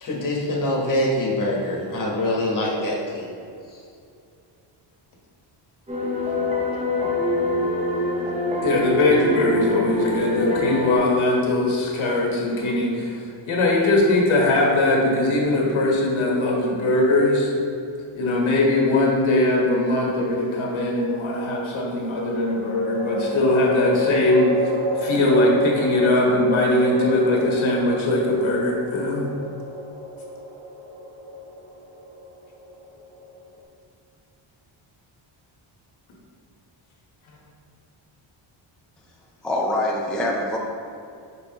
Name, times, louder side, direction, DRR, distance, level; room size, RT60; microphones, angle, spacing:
voice 1, 0.0-3.3, left 1 dB, 40° left, -3 dB, 1.2 m, -24 dB
sound 1, 5.9-11.0, left 1 dB, 15° right, 0.8 m, -24 dB
voice 2, 8.6-17.5 18.1-24.5 24.9-29.3, left 2 dB, 70° left, -2 dB, 1.4 m, -21 dB
sound 2, 22.3-33.6, equal, 80° right, 1.0 m, -30 dB
voice 3, 39.4-40.6, left 1 dB, ahead, -2 dB, 0.4 m, -24 dB
5.8 x 5.6 x 2.9 m, 2.5 s
wide cardioid pair, 155°, 49 cm